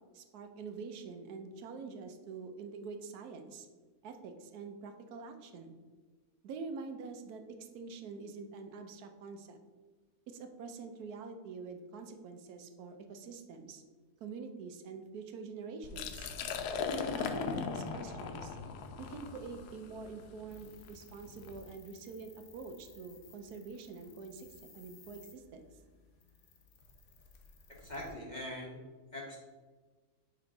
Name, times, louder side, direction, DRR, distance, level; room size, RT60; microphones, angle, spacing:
voice 1, 0.1-3.7 4.0-5.7 6.4-9.6 10.3-13.8 14.2-16.3 16.9-18.6 19.0-25.7, right 4 dB, 80° right, 6 dB, 1.2 m, -46 dB
Liquid, 15.8-21.6, left 6 dB, 85° left, 1.1 m, -39 dB
sound 1, 20.5-28.1, left 3 dB, 65° left, 1.3 m, -59 dB
voice 2, 27.7-28.8 29.1-29.4, left 1 dB, 40° left, -2 dB, 0.7 m, -42 dB
5.8 x 3.6 x 4.8 m, 1.4 s
omnidirectional pair, 1.6 m